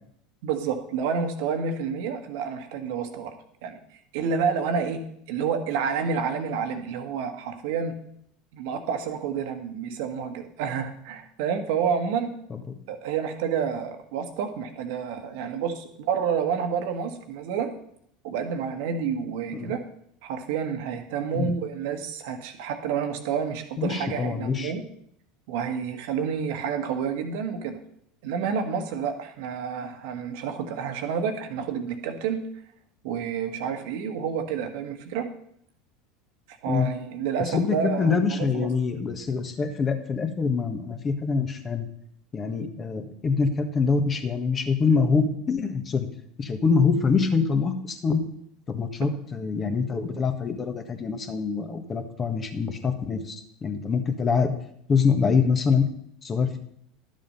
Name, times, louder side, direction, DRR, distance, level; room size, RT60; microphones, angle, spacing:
voice 1, 0.4-3.3 3.6-3.8 4.1-8.0 8.5-12.4 12.9-17.8 18.2-19.8 20.2-24.8 25.5-27.8 28.2-32.4 33.0-35.3 36.6-38.7, right 6 dB, 65° right, 6 dB, 1.4 m, -29 dB
voice 2, 23.8-24.7 36.7-36.9 37.5-41.9 42.3-46.1 46.4-48.2 48.7-53.3 53.6-54.5 54.9-55.8 56.2-56.6, left 5 dB, 30° left, 6 dB, 1.6 m, -25 dB
11.5 x 7.4 x 5.6 m, 0.70 s
hypercardioid pair, 80°, 0 cm